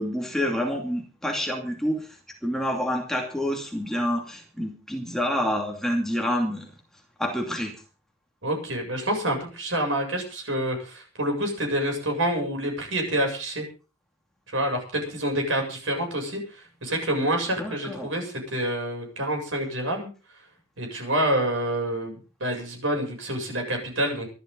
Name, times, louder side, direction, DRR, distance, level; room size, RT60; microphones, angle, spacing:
voice 1, 0.0-2.2 2.4-6.7 7.2-7.7 17.6-18.1, equal, ahead, 1 dB, 2.6 m, -28 dB
voice 2, 8.4-13.6 14.5-20.1 20.8-24.3, right 1 dB, 75° right, 3 dB, 7.5 m, -27 dB
24.5 x 11.5 x 4.0 m, 0.35 s
head